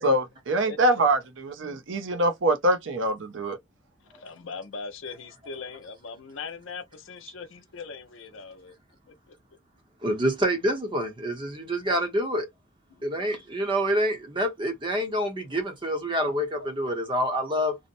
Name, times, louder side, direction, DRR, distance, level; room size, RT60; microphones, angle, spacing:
voice 1, 0.0-3.6, right 1 dB, 70° right, 0.6 m, -24 dB
voice 2, 4.1-8.7 9.1-9.4 12.9-13.0, left 5 dB, 75° left, 0.6 m, -40 dB
voice 3, 10.0-12.5 13.0-17.8, equal, 25° right, 0.7 m, -27 dB
2.7 x 2.1 x 2.5 m
head